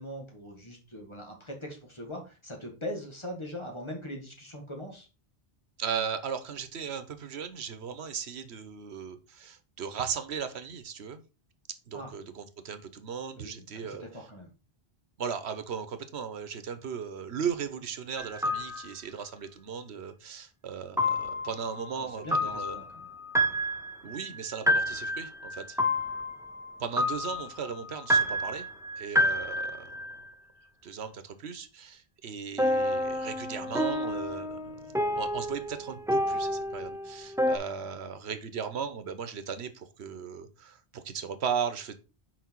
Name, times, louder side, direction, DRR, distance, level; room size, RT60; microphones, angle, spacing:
voice 1, 0.0-5.1 11.9-12.1 13.4-14.5 22.0-23.1 37.8-37.9, left 1 dB, 25° left, 2 dB, 1.8 m, -41 dB
voice 2, 5.8-11.2 11.9-14.0 15.2-22.8 24.0-25.8 26.8-28.7 29.0-30.1 30.8-41.9, right 7 dB, 90° right, 10 dB, 1.2 m, -37 dB
sound 1, 18.2-18.9 21.0-30.2 32.6-37.6, equal, 5° right, 0.6 m, -29 dB
6.2 x 5.1 x 4.5 m, 0.31 s
omnidirectional pair, 1.1 m